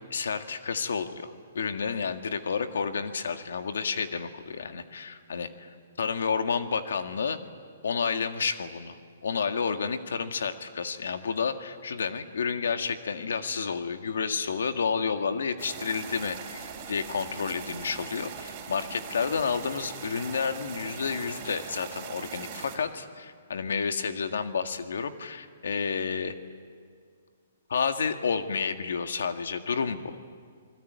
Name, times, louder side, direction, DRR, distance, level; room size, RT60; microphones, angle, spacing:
voice 1, 0.1-5.7 6.0-7.4 7.8-9.0 9.2-26.3 27.7-30.2, left 5 dB, 80° left, 7 dB, 1.8 m, -30 dB
sound 1, 15.6-22.8, right 6 dB, 20° right, 4.0 m, -41 dB
28.0 x 20.5 x 9.4 m, 2.1 s
hypercardioid pair, 180°, 0 cm